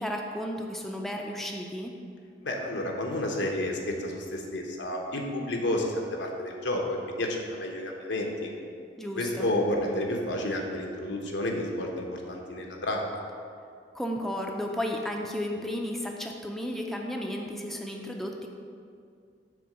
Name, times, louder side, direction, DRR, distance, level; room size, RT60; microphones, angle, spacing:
voice 1, 0.0-1.9 9.0-9.5 13.9-18.5, equal, ahead, 1 dB, 0.5 m, -33 dB
voice 2, 2.4-8.5 9.2-13.2, left 1 dB, 90° left, 0 dB, 1.0 m, -31 dB
7.0 x 3.7 x 6.2 m, 2.3 s
head